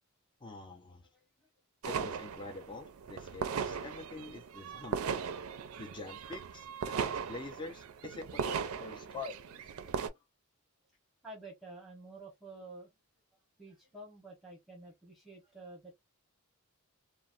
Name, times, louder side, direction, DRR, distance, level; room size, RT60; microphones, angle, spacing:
voice 1, 0.4-1.1 1.8-5.1 5.8-10.0, left 3 dB, 20° left, 0.5 m, -46 dB
sound 1, 1.8-10.1, right 6 dB, 70° right, 0.4 m, -38 dB
voice 2, 11.2-12.9 13.6-15.9, right 2 dB, ahead, 0.9 m, -50 dB
2.9 x 2.0 x 2.4 m
head